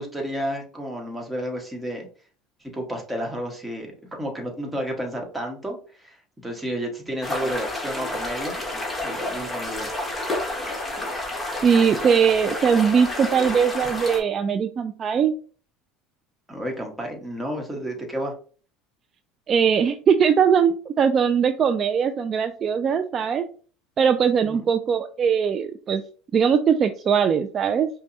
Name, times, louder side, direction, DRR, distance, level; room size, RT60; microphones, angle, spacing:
voice 1, 0.0-2.1 2.7-8.6 9.0-9.9 16.5-18.3 24.4-24.7, equal, 10° right, 1 dB, 1.3 m, -31 dB
sound 1, 7.2-14.2, left 1 dB, 10° left, 1.4 m, -30 dB
voice 2, 11.6-15.3 19.5-23.5 24.0-26.0 26.3-27.9, right 7 dB, 40° right, 8 dB, 0.3 m, -20 dB
5.2 x 2.2 x 2.7 m, 0.41 s
supercardioid pair, 90°, 0 cm